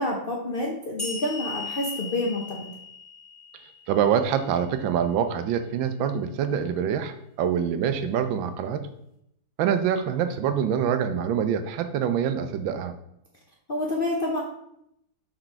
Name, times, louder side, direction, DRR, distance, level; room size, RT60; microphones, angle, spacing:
voice 1, 0.0-2.7 13.7-14.4, left 1 dB, 55° left, -2 dB, 0.6 m, -28 dB
sound 1, 1.0-4.4, left 4 dB, 10° left, 2.3 m, -37 dB
voice 2, 3.9-8.9 9.6-12.9, right 8 dB, 85° right, 9 dB, 1.4 m, -25 dB
6.2 x 4.4 x 4.5 m, 0.77 s
omnidirectional pair, 2.1 m